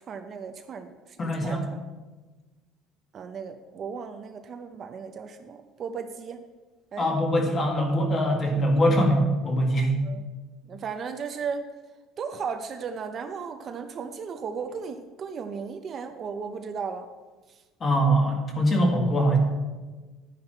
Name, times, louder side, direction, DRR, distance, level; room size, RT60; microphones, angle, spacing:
voice 1, 0.0-1.7 3.1-6.4 6.9-7.1 10.0-10.2 10.7-11.6 12.2-17.1 17.5-17.6, right 6 dB, 35° right, 6 dB, 0.7 m, -35 dB
voice 2, 1.2-1.6 7.0-10.0 17.8-19.4, equal, 25° left, 2 dB, 2.0 m, -23 dB
12.0 x 9.6 x 4.5 m, 1.3 s
cardioid pair, 160°, 0 cm